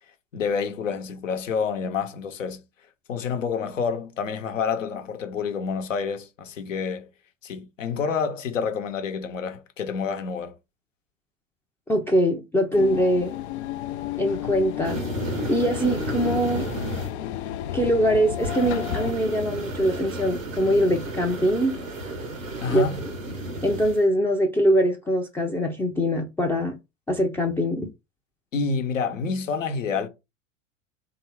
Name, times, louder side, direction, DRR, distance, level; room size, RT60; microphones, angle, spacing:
voice 1, 0.3-2.6 3.1-7.1 7.4-10.5 22.6-23.0 28.5-30.1, left 5 dB, 75° left, 0.9 m, -28 dB
voice 2, 11.9-13.3 14.2-15.0 15.5-16.7 17.7-21.8 22.7-22.8 23.6-26.8 27.1-27.9, equal, 5° left, 0.4 m, -23 dB
sound 1, 12.7-19.1, left 11 dB, 60° left, 0.5 m, -32 dB
sound 2, 14.8-17.1 18.4-24.0, right 1 dB, 90° right, 1.0 m, -32 dB
3.5 x 2.8 x 4.4 m
figure-of-eight pair, 85°, 39 cm